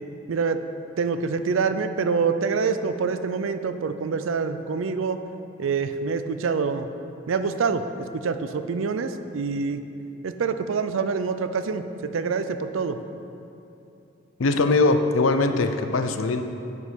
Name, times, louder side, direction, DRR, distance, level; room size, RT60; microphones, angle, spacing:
voice 1, 0.3-0.6 1.0-5.2 5.6-6.9 7.3-9.8 10.2-13.0, right 5 dB, 80° right, 10 dB, 0.4 m, -26 dB
voice 2, 14.4-16.4, left 3 dB, 85° left, 8 dB, 0.5 m, -21 dB
9.6 x 5.1 x 5.1 m, 2.7 s
head